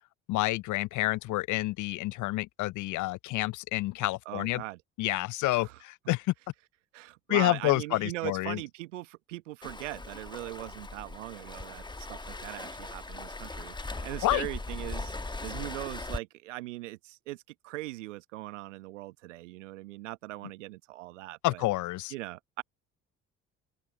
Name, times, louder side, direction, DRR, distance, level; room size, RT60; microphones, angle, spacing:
voice 1, 0.3-4.6 5.0-6.2 7.3-8.6 14.2-14.5 21.4-22.1, left 18 dB, 55° left, 0.6 m, -29 dB
voice 2, 4.2-4.8 5.4-5.8 6.9-15.1 15.4-21.6 22.1-22.6, right 18 dB, 80° right, 1.0 m, -40 dB
Waves surf, 9.6-16.2, left 2 dB, 10° left, 1.3 m, -39 dB
figure-of-eight pair, 45°, 36 cm